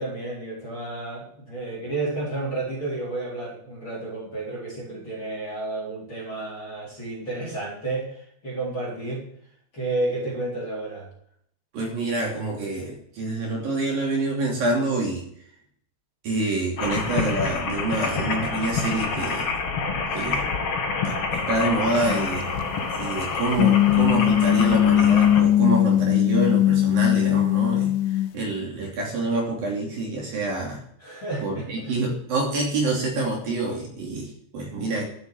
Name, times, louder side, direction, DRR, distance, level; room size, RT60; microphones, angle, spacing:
voice 1, 0.0-9.3 9.7-11.1 31.0-31.9, right 2 dB, 25° left, -5 dB, 4.3 m, -31 dB
voice 2, 11.7-15.3 16.2-19.5 20.1-20.5 21.0-22.5 23.0-30.8 31.4-35.0, right 2 dB, 50° right, -1 dB, 4.3 m, -27 dB
sound 1, 16.8-25.4, left 4 dB, 45° left, 2.1 m, -27 dB
sound 2, 22.1-22.3 23.6-28.3, left 12 dB, 90° left, 3.3 m, -19 dB
12.5 x 8.2 x 9.0 m, 0.67 s
omnidirectional pair, 5.4 m